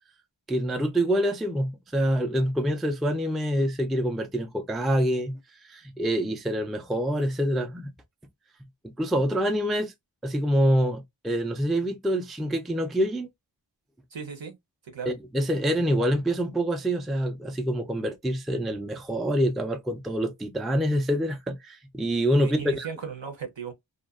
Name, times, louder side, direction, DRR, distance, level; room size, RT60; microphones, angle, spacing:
voice 1, 0.5-7.9 8.8-9.9 10.2-13.3 15.1-22.9, equal, ahead, 0.3 m, -26 dB
voice 2, 14.1-14.6 14.8-15.1 22.4-23.7, right 6 dB, 70° right, 0.8 m, -36 dB
2.5 x 2.2 x 2.3 m
wide cardioid pair, 45°, 47 cm